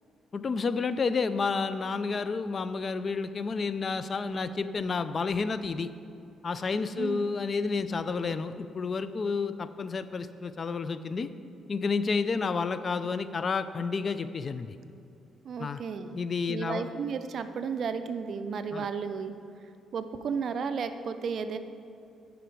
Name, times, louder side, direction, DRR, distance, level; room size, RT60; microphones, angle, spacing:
voice 1, 0.3-5.9 6.4-11.3 11.7-14.7 15.6-15.8 16.1-16.9 18.7-18.9, left 4 dB, 40° left, 12 dB, 0.4 m, -30 dB
voice 2, 7.0-7.4 15.4-16.2 16.5-19.3 19.9-21.6, right 6 dB, 60° right, 10 dB, 0.5 m, -33 dB
10.0 x 5.1 x 4.6 m, 2.7 s
cardioid pair, 90°, 0 cm